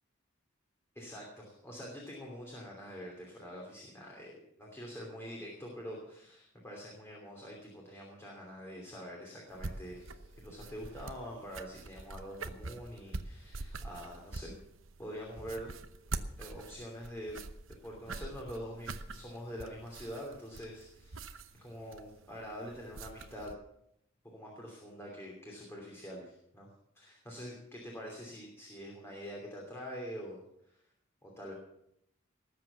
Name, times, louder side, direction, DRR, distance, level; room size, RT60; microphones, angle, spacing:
voice 1, 0.9-14.5 15.0-15.7 16.4-17.4 17.8-23.5 24.2-26.7 26.9-30.8 31.2-31.5, equal, 15° left, -2 dB, 2.9 m, -45 dB
sound 1, 9.5-23.5, right 3 dB, 70° right, 0.9 m, -45 dB
19.0 x 7.8 x 7.0 m, 0.77 s
head